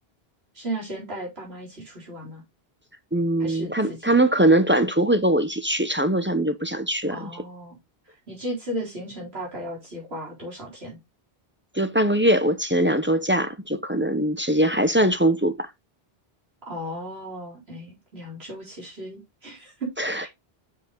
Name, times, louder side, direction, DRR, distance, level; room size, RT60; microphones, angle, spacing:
voice 1, 0.5-2.4 3.4-4.0 7.1-7.8 8.3-11.0 16.7-19.9 20.2-20.3, right 1 dB, 80° right, 4.1 m, -35 dB
voice 2, 3.1-7.3 11.7-15.7 20.0-20.3, right 1 dB, 15° right, 0.5 m, -22 dB
7.0 x 5.5 x 3.7 m
omnidirectional pair, 1.0 m